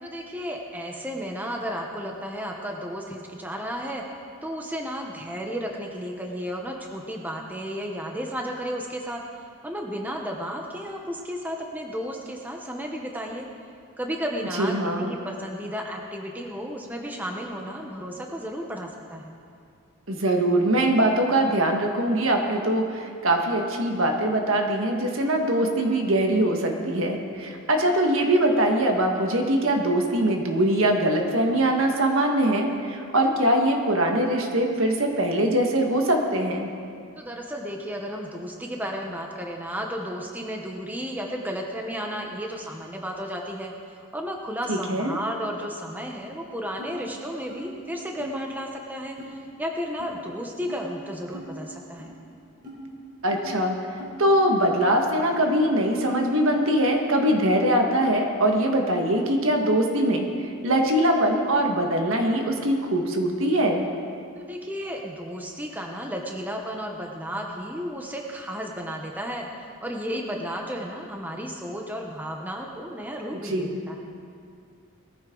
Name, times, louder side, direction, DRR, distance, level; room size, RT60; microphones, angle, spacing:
voice 1, 0.0-4.0 4.4-9.2 9.6-13.5 14.0-19.3 37.2-43.7 44.1-52.1 64.3-74.0, equal, 10° right, 1 dB, 0.9 m, -33 dB
voice 2, 14.6-15.1 20.1-36.7 44.7-45.1 53.2-53.7 54.2-63.9 73.4-73.8, right 1 dB, 65° right, 2 dB, 1.7 m, -22 dB
sound 1, 46.8-46.9 47.5-47.6 48.2-48.3 49.2-49.3 50.0-50.1 50.7-50.8 51.3-51.5 52.0-52.1 52.6-52.8 53.3-53.4 54.0-54.1 54.6-54.8 55.3-55.5 56.0-56.1 56.6-56.7, left 1 dB, 40° right, 4.0 m, -42 dB
19.5 x 14.0 x 3.9 m, 2.4 s
head